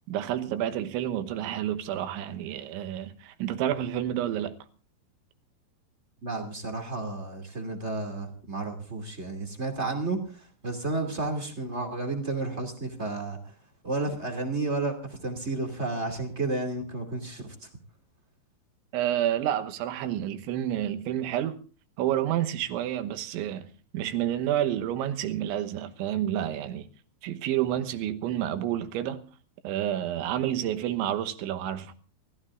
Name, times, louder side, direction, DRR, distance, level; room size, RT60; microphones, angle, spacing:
voice 1, 0.1-4.6 18.9-21.6 22.0-23.7 23.9-26.9 27.2-29.2 29.6-31.9, right 11 dB, 85° right, 3.4 m, -29 dB
voice 2, 6.2-13.5 13.8-17.7, right 2 dB, 25° right, 1.6 m, -32 dB
30.0 x 14.5 x 2.5 m
omnidirectional pair, 5.3 m